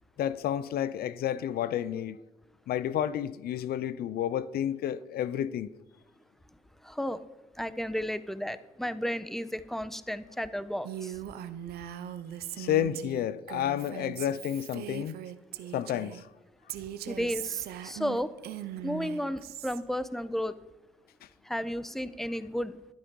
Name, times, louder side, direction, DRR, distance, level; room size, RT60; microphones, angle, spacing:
voice 1, 0.2-2.2 2.7-5.7 12.6-15.2 15.7-16.3, left 10 dB, 75° left, 0.6 m, -30 dB
voice 2, 6.8-7.2 7.6-11.2 17.1-18.3 18.8-20.6 21.4-22.8, equal, ahead, 1.1 m, -33 dB
Female speech woman speaking, 10.8-16.2 16.7-19.8, right 11 dB, 80° right, 0.9 m, -40 dB
12.0 x 11.5 x 5.5 m
supercardioid pair, 50°, 16 cm